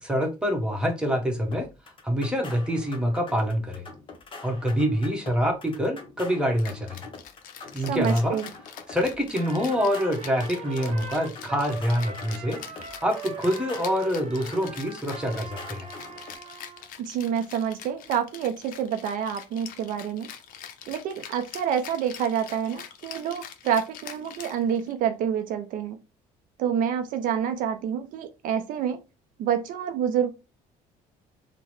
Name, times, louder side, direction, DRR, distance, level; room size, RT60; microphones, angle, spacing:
voice 1, 0.0-1.7 2.0-3.9 4.4-7.1 7.7-8.4 8.9-15.9, equal, 5° right, 1.0 m, -26 dB
sound 1, 1.5-16.4, left 3 dB, 35° left, 0.8 m, -45 dB
Rattle (instrument), 6.6-25.1, left 9 dB, 70° left, 0.5 m, -44 dB
voice 2, 7.9-8.5 17.0-20.3 20.9-26.0 26.6-29.0 29.4-30.3, right 8 dB, 65° right, 0.4 m, -27 dB
Trumpet, 9.3-16.9, right 5 dB, 45° right, 0.9 m, -41 dB
3.6 x 2.1 x 3.1 m
cardioid pair, 100°, 15 cm